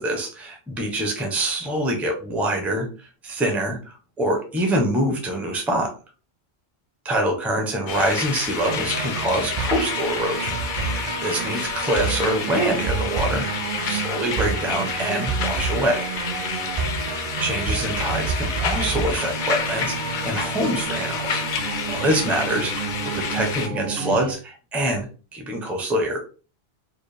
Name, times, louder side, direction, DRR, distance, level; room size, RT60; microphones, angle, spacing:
voice 1, 0.0-5.9 7.0-10.5 10.8-13.5 13.8-16.1 17.4-21.4 21.9-25.1 25.3-26.2, right 1 dB, ahead, 1 dB, 0.6 m, -25 dB
sound 1, 7.9-23.7, left 6 dB, 55° left, 0.6 m, -29 dB
sound 2, 8.6-24.3, right 5 dB, 55° right, 0.5 m, -29 dB
4.6 x 2.1 x 3.3 m, 0.36 s
omnidirectional pair, 1.2 m